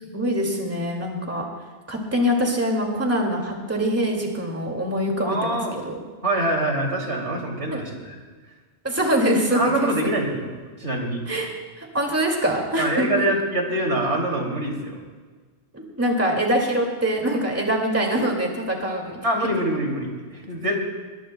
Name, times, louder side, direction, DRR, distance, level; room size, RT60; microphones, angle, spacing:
voice 1, 0.0-1.5 1.9-6.0 7.7-7.8 8.8-9.9 11.3-11.5 11.8-13.3 15.7-19.2, equal, 10° right, 0 dB, 2.1 m, -24 dB
voice 2, 5.2-5.8 6.2-8.2 9.5-11.2 12.8-15.0 19.2-20.8, right 1 dB, 70° right, 0 dB, 3.0 m, -25 dB
22.5 x 21.0 x 2.2 m, 1.4 s
omnidirectional pair, 1.2 m